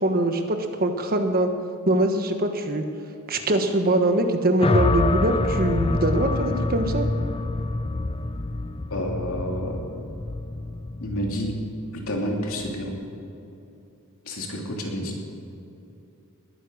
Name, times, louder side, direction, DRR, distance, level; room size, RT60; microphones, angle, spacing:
voice 1, 0.0-1.5 1.9-2.8 3.3-7.1, right 1 dB, 40° right, 6 dB, 1.2 m, -23 dB
sound 1, 4.6-12.9, left 2 dB, 25° left, 0.5 m, -27 dB
voice 2, 8.9-9.8 11.0-11.5 11.9-12.9 14.2-15.2, equal, 65° left, 0 dB, 2.9 m, -29 dB
20.5 x 9.6 x 6.4 m, 2.8 s
head